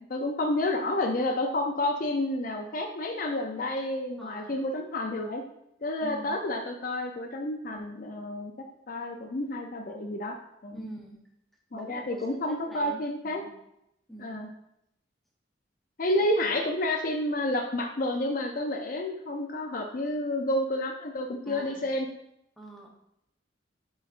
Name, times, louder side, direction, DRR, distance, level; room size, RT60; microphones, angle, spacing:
voice 1, 0.1-5.4 5.8-8.5 8.9-10.4 10.6-10.9 11.7-13.4 14.2-14.5 16.0-22.1, left 1 dB, 45° left, 1 dB, 0.5 m, -30 dB
voice 2, 4.2-4.7 6.0-6.4 10.7-11.2 11.7-13.5 14.1-14.4 21.4-21.9 22.6-22.9, right 1 dB, ahead, -2 dB, 0.9 m, -44 dB
9.2 x 4.0 x 2.5 m, 0.79 s
head